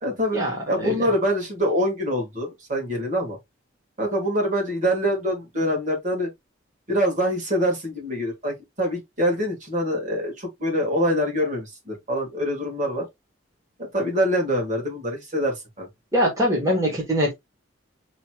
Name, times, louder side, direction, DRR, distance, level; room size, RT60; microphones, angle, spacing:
voice 1, 0.0-0.4 0.7-3.4 4.0-6.3 6.9-13.0 13.8-15.9, equal, 40° right, 1.9 m, -25 dB
voice 2, 16.1-17.3, equal, 15° right, 1.6 m, -22 dB
6.7 x 3.1 x 2.3 m
head